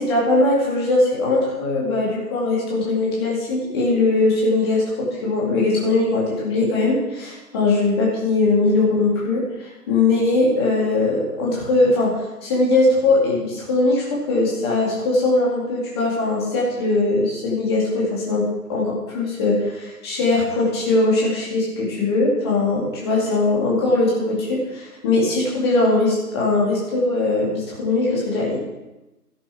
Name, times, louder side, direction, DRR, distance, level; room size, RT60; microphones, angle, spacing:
voice 1, 0.0-28.6, left 2 dB, 15° left, -5 dB, 2.3 m, -20 dB
13.0 x 11.0 x 4.6 m, 1.0 s
figure-of-eight pair, 160°, 49 cm